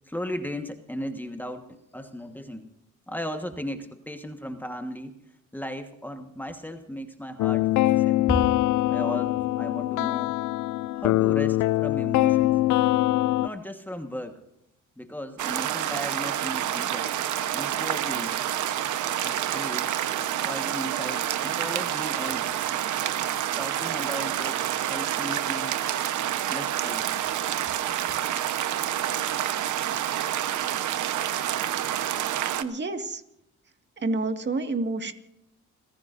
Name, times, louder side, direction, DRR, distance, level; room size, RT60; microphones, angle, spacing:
voice 1, 0.1-2.7 3.1-5.1 5.5-8.4 8.9-10.4 11.0-12.6 13.4-14.4 15.0-17.1 17.5-18.3 19.2-20.0 20.4-22.6 23.6-25.7 26.5-27.2, equal, 5° left, 5 dB, 1.4 m, -36 dB
sound 1, 7.4-13.5, left 16 dB, 80° left, 0.5 m, -23 dB
sound 2, 15.4-32.6, right 11 dB, 75° right, 1.1 m, -28 dB
voice 2, 32.6-33.2 34.0-35.1, right 3 dB, 35° right, 6 dB, 2.0 m, -28 dB
29.5 x 15.5 x 2.6 m, 0.80 s
cardioid pair, 90°, 30 cm